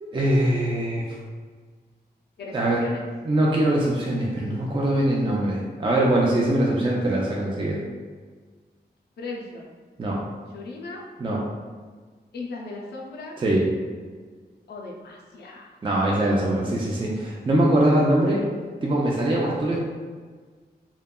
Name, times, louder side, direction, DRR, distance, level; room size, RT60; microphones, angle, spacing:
voice 1, 0.0-1.2 2.5-2.8 3.2-7.8 10.0-10.2 11.2-11.4 13.4-13.7 15.8-18.4 18.8-19.8, right 1 dB, 30° right, -3 dB, 0.4 m, -22 dB
voice 2, 2.4-3.0 6.6-6.7 9.2-9.7 10.5-11.0 12.3-13.3 14.7-15.7 18.3-18.4, left 3 dB, 75° left, -2 dB, 0.4 m, -37 dB
2.7 x 2.2 x 2.2 m, 1.5 s
wide cardioid pair, 80°, 17 cm